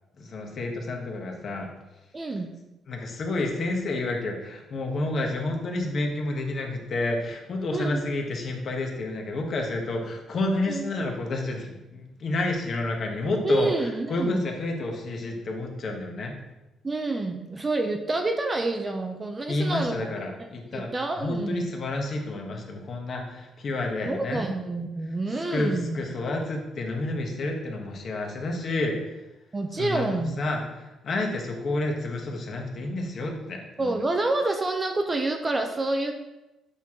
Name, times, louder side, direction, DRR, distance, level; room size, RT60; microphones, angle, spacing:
voice 1, 0.2-1.7 2.9-16.3 19.5-20.9 21.2-24.5 25.5-29.0 29.7-34.0, left 2 dB, 40° left, 2 dB, 1.1 m, -30 dB
voice 2, 2.1-2.5 7.7-8.0 10.7-10.9 13.4-14.5 16.8-20.1 20.4-21.7 24.0-26.0 29.5-30.4 33.8-36.1, right 2 dB, 20° right, 5 dB, 0.5 m, -28 dB
8.2 x 4.6 x 3.7 m, 1.0 s
cardioid pair, 145°, 0 cm